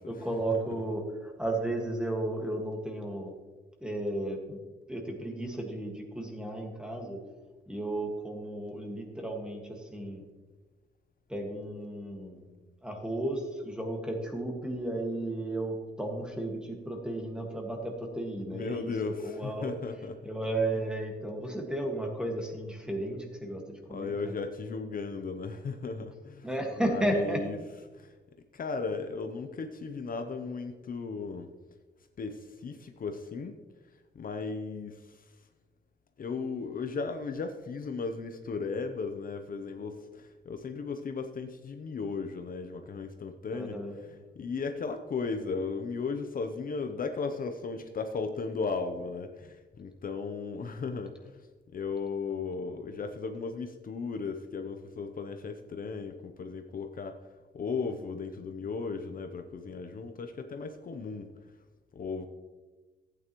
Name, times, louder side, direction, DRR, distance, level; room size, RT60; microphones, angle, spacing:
voice 1, 0.1-3.3 3.8-4.6 4.9-7.2 7.7-10.2 11.3-12.5 12.8-19.7 20.2-24.4 26.4-27.4 43.5-44.0, right 1 dB, 5° right, 1 dB, 1.7 m, -34 dB
voice 2, 18.5-20.2 23.9-26.5 26.8-27.6 27.9-28.1 28.5-31.5 32.2-33.6 34.1-35.3 36.2-51.5 51.7-57.2 57.5-61.3 61.9-62.3, left 4 dB, 50° left, 6 dB, 0.7 m, -36 dB
14.5 x 9.2 x 3.0 m, 1.3 s
wide cardioid pair, 140°, 19 cm